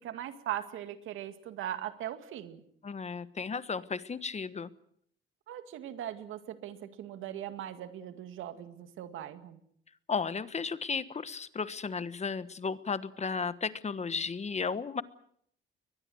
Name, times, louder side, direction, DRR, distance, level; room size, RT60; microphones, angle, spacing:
voice 1, 0.0-2.6 5.5-9.6, right 11 dB, 85° right, 9 dB, 2.1 m, -40 dB
voice 2, 2.8-4.7 10.1-15.0, left 5 dB, 35° left, 14 dB, 1.3 m, -34 dB
22.5 x 20.0 x 7.8 m, 0.68 s
cardioid pair, 90°, 20 cm